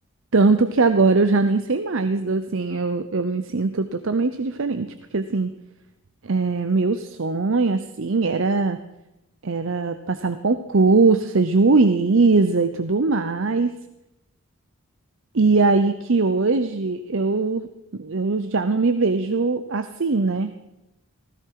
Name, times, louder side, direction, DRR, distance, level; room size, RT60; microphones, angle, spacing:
voice 1, 0.3-5.5 6.2-8.8 9.4-13.7 15.3-17.7 18.0-20.5, right 3 dB, 60° right, 10 dB, 0.7 m, -21 dB
16.5 x 14.5 x 4.7 m, 0.94 s
head